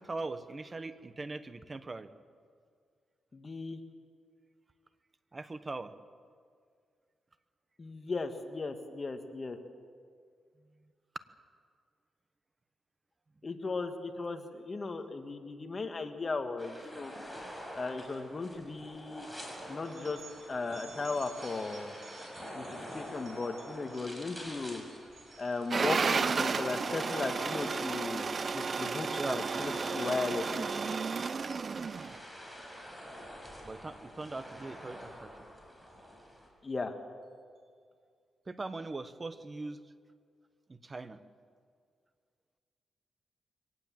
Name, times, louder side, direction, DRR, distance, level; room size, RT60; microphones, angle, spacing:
voice 1, 0.0-2.1 5.3-5.9 29.2-29.4 33.6-35.3 38.5-39.8 40.7-41.2, right 3 dB, 30° right, 12 dB, 1.2 m, -40 dB
voice 2, 3.3-3.8 7.8-9.6 13.4-17.1 17.7-19.3 19.7-20.2 20.5-21.9 22.5-24.8 25.4-30.4 36.6-36.9, left 3 dB, 35° left, 6 dB, 1.8 m, -36 dB
sound 1, 16.6-36.5, equal, 5° right, 6.1 m, -47 dB
sound 2, 19.8-27.1 27.6-28.0 28.3-28.8 29.1-30.5 31.5-31.7 32.6-32.8 33.8-33.9 34.3-34.4 34.9-35.1, right 6 dB, 60° right, 4.9 m, -56 dB
sound 3, 25.7-32.2, right 5 dB, 45° right, 0.6 m, -32 dB
23.5 x 18.0 x 7.7 m, 2.1 s
cardioid pair, 90°, 0 cm